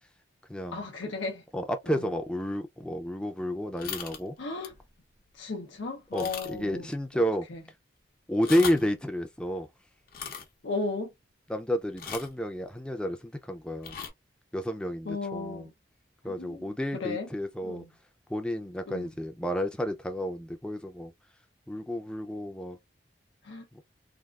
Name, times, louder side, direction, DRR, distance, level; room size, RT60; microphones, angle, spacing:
voice 1, 0.7-1.4 1.9-2.2 4.4-4.7 5.3-7.2 7.5-7.6 8.5-8.7 10.6-11.1 15.1-15.7 16.2-17.3 17.6-17.9 18.9-19.1 23.4-23.7, left 3 dB, 85° left, 0.7 m, -36 dB
voice 2, 1.5-4.3 6.1-7.5 8.3-9.7 11.5-14.0 14.5-15.7 16.2-17.8 18.3-21.1 21.7-22.8 23.7-23.8, equal, 5° left, 0.4 m, -31 dB
sound 1, 3.8-4.2 4.6-4.8 5.3-5.4 6.1-6.7 7.0-7.1 8.3-8.9 10.1-10.4 12.0-12.4 13.8-14.1, left 6 dB, 50° left, 0.8 m, -38 dB
3.5 x 2.4 x 2.3 m
head